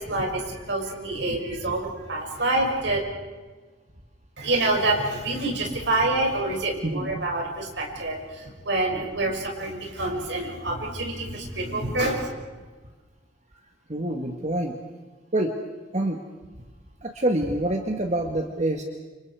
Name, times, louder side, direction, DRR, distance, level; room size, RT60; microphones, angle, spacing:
voice 1, 0.0-3.0 4.4-12.3, right 2 dB, 65° right, 0 dB, 6.4 m, -27 dB
voice 2, 6.8-7.2 13.9-14.8 15.3-15.5 15.9-16.2 17.0-18.8, right 1 dB, 35° right, 3 dB, 1.7 m, -26 dB
29.5 x 27.5 x 4.8 m, 1.3 s
head